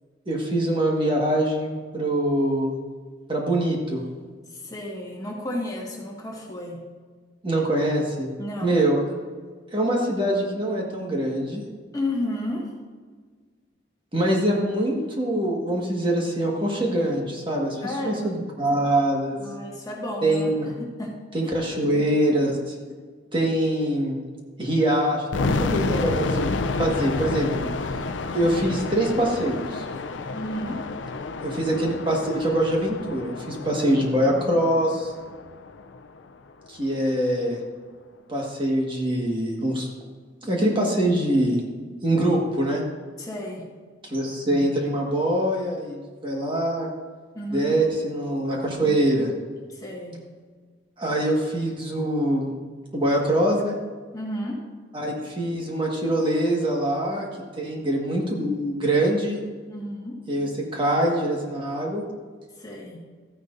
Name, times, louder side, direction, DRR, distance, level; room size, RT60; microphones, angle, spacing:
voice 1, 0.3-2.7 3.3-4.0 7.4-8.3 8.6-9.0 9.7-11.6 14.1-19.4 20.2-20.7 21.3-22.7 23.3-24.2 24.6-26.5 26.8-27.7 28.3-29.8 31.4-35.1 36.7-37.6 38.3-39.9 40.4-41.6 42.0-42.8 44.1-46.9 47.5-49.3 51.0-52.5 52.9-53.8 54.9-57.3 57.6-59.4 60.3-62.0, right 1 dB, 30° right, -1 dB, 1.6 m, -24 dB
voice 2, 4.5-6.8 8.4-8.8 11.9-12.7 17.8-18.4 19.4-20.5 20.8-21.1 21.4-21.5 30.3-30.8 34.2-34.6 43.2-43.6 47.3-47.8 49.7-50.2 54.1-54.6 59.7-60.2 62.6-63.0, left 1 dB, 20° left, -2 dB, 1.7 m, -32 dB
sound 1, 25.3-36.2, left 3 dB, 85° left, 0.5 m, -30 dB
13.5 x 10.0 x 2.6 m, 1.5 s
head